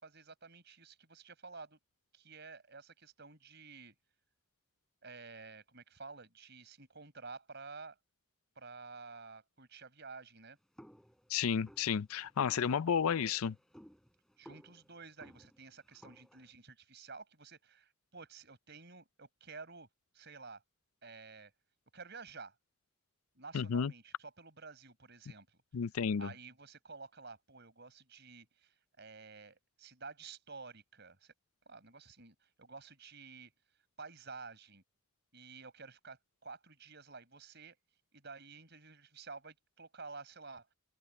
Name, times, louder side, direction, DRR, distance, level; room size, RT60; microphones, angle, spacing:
voice 1, 0.0-1.8 2.1-4.0 5.0-8.0 8.6-10.6 14.4-19.9 20.1-20.6 21.0-21.5 21.9-22.6 23.4-25.6 26.2-31.3 31.7-33.5 34.0-34.8 35.3-37.8 38.1-40.7, right 4 dB, 50° right, 5.3 m, -51 dB
sound 1, 10.8-16.5, equal, ahead, 5.6 m, -58 dB
voice 2, 11.3-13.6 23.5-23.9 25.7-26.3, left 7 dB, 80° left, 0.4 m, -32 dB
open air
head